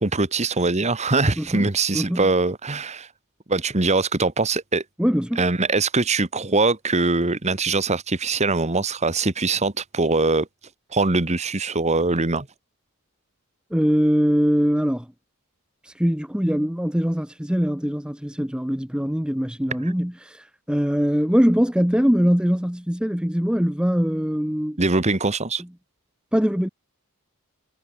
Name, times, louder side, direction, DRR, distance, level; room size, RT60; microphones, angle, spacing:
voice 1, 0.0-3.1 3.5-4.8 5.4-10.5 10.9-12.5 24.8-25.6, right 3 dB, 30° right, 1.4 m, -22 dB
voice 2, 1.4-1.7 1.9-2.3 5.0-5.4 13.7-15.1 15.8-24.8 26.3-26.7, equal, 5° right, 0.9 m, -22 dB
head